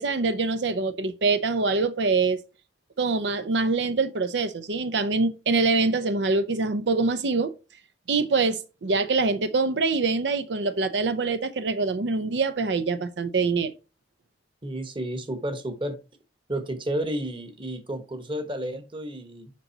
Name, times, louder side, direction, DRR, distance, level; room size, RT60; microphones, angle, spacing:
voice 1, 0.0-2.4 3.0-7.5 8.1-13.7, right 3 dB, 80° right, 0.6 m, -24 dB
voice 2, 14.6-16.0 16.5-19.5, right 1 dB, 30° right, 1.2 m, -31 dB
7.4 x 5.3 x 2.8 m
head